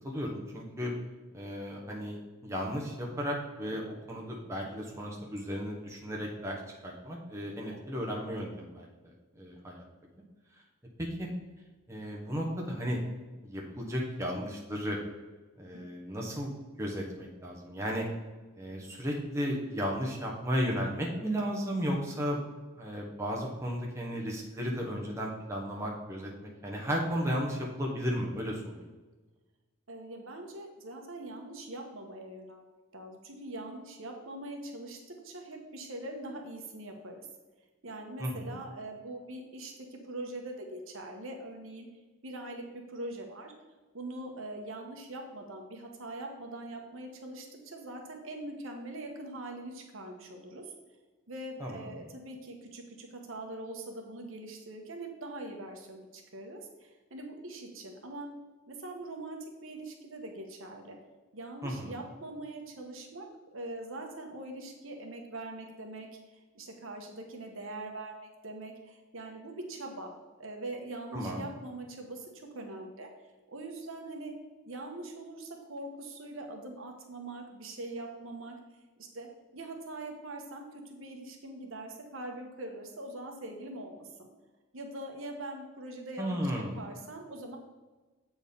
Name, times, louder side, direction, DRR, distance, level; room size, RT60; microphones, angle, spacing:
voice 1, 0.0-0.9 1.3-2.1 2.4-9.8 11.2-11.3 11.9-13.0 13.4-15.0 15.6-16.5 16.8-18.1 18.6-22.4 22.8-26.3 26.6-28.7 38.2-38.6 51.6-52.0 61.6-62.0 71.1-71.5 86.2-86.9, equal, 15° right, -2 dB, 1.1 m, -34 dB
voice 2, 29.9-32.6 32.9-37.3 37.8-41.9 42.2-42.6 42.9-43.5 43.9-50.7 51.3-58.3 58.7-61.0 61.3-66.1 66.5-70.1 70.4-73.1 73.5-74.3 74.7-78.5 79.0-84.3 84.7-87.6, right 2 dB, 65° right, 3 dB, 1.2 m, -42 dB
8.0 x 4.6 x 5.3 m, 1.2 s
head